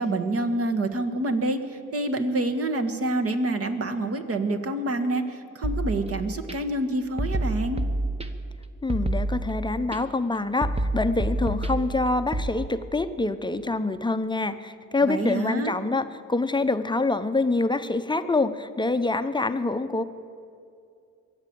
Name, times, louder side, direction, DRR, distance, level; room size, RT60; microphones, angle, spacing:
voice 1, 0.0-7.8 15.1-15.7, right 2 dB, 40° right, 6 dB, 1.6 m, -27 dB
sound 1, 5.6-6.5 7.2-8.5 8.9-10.0 10.6-12.5, right 1 dB, 15° right, 1.2 m, -28 dB
voice 2, 8.8-20.0, left 3 dB, 15° left, 10 dB, 0.8 m, -26 dB
22.5 x 8.2 x 7.0 m, 2.5 s
supercardioid pair, 60°, 35 cm